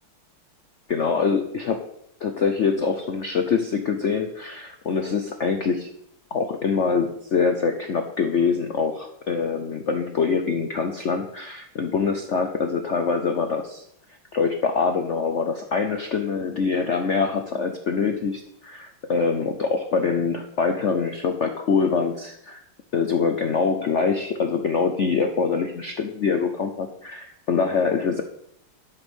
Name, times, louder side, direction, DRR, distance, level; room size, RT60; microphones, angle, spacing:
voice 1, 0.9-1.8 2.2-5.9 6.3-13.8 14.3-22.6 22.9-28.2, left 5 dB, 90° left, 5 dB, 0.6 m, -24 dB
12.0 x 5.2 x 6.2 m, 0.73 s
omnidirectional pair, 2.4 m